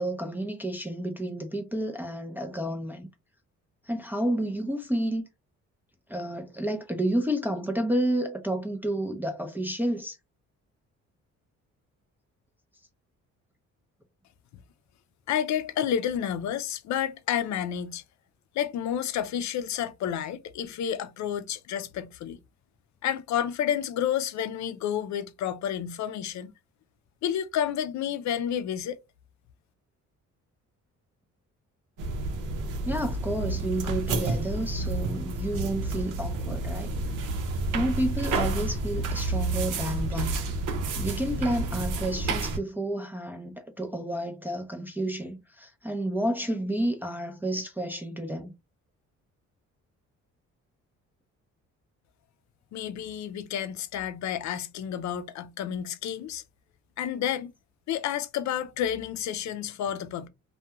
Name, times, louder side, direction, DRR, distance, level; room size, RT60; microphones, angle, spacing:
voice 1, 0.0-3.1 3.9-5.2 6.1-10.2 32.8-36.9 37.7-40.4 41.0-48.5, right 1 dB, 5° right, 0.5 m, -30 dB
voice 2, 15.3-18.0 18.5-22.4 23.0-26.5 27.2-29.0 52.7-56.4 57.0-57.5 57.9-60.3, left 9 dB, 65° left, 0.5 m, -30 dB
sound 1, 32.0-42.6, right 2 dB, 85° right, 0.7 m, -30 dB
2.3 x 2.2 x 2.8 m
cardioid pair, 90°, 30 cm